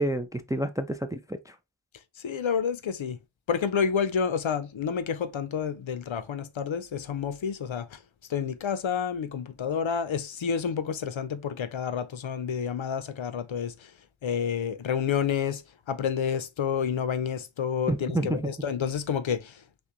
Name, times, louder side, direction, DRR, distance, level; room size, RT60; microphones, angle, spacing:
voice 1, 0.0-1.5 17.9-18.4, right 1 dB, 10° right, 0.3 m, -29 dB
voice 2, 2.2-3.2 3.5-8.0 8.3-13.9 14.2-15.6 15.9-19.6, left 7 dB, 65° left, 0.6 m, -29 dB
6.1 x 2.2 x 3.0 m
wide cardioid pair, 60°, 50 cm